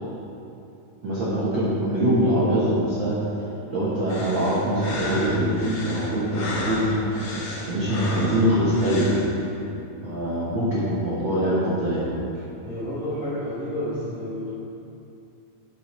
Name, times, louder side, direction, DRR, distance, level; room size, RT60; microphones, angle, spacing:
voice 1, 1.0-3.2 3.7-6.9 7.4-9.1 10.0-12.1, right 1 dB, 85° right, -9 dB, 1.0 m, -23 dB
sound 1, 4.1-9.3, left 2 dB, 80° left, 1.1 m, -33 dB
voice 2, 12.6-14.5, equal, 55° left, -11 dB, 1.9 m, -30 dB
7.7 x 6.7 x 4.3 m, 2.8 s
omnidirectional pair, 4.2 m